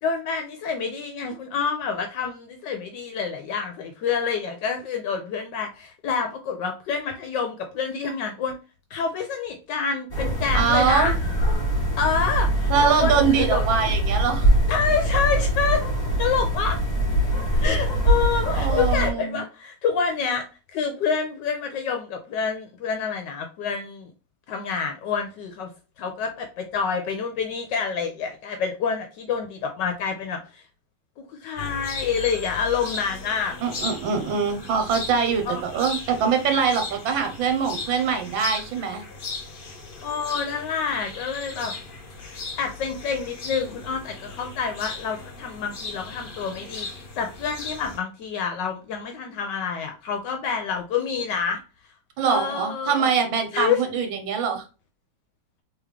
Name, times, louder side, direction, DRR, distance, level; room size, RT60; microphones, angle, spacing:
voice 1, 0.0-8.5 8.9-11.1 12.0-13.9 14.7-15.8 16.2-16.8 17.5-20.4 20.7-24.1 24.5-25.7 26.0-30.6 31.2-33.6 35.5-35.6 40.0-41.7 42.2-51.6 52.3-53.1 53.5-53.8, left 6 dB, 75° left, 5 dB, 1.2 m, -27 dB
sound 1, 10.1-19.1, right 1 dB, 25° left, 2.0 m, -23 dB
voice 2, 10.5-11.2 12.7-14.5 18.5-19.4 33.6-39.0 52.2-54.6, right 6 dB, 75° right, 5 dB, 1.6 m, -23 dB
sound 2, 31.6-48.0, left 3 dB, 50° left, 0.6 m, -37 dB
3.6 x 3.4 x 3.2 m, 0.32 s
omnidirectional pair, 2.1 m